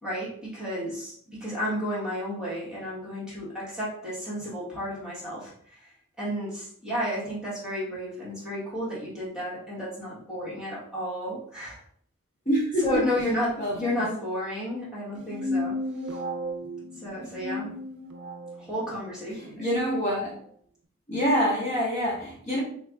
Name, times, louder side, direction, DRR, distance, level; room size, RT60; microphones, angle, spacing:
voice 1, 0.0-11.8 12.8-15.8 16.0-16.2 16.9-17.8 18.6-19.7, equal, 5° right, -9 dB, 1.3 m, -32 dB
voice 2, 12.4-13.0 13.6-14.0 17.6-17.7 19.6-20.4 21.1-22.6, equal, 35° left, -6 dB, 1.3 m, -26 dB
sound 1, 15.1-18.6, left 1 dB, 55° right, 0.5 m, -33 dB
4.0 x 3.2 x 2.4 m, 0.62 s
head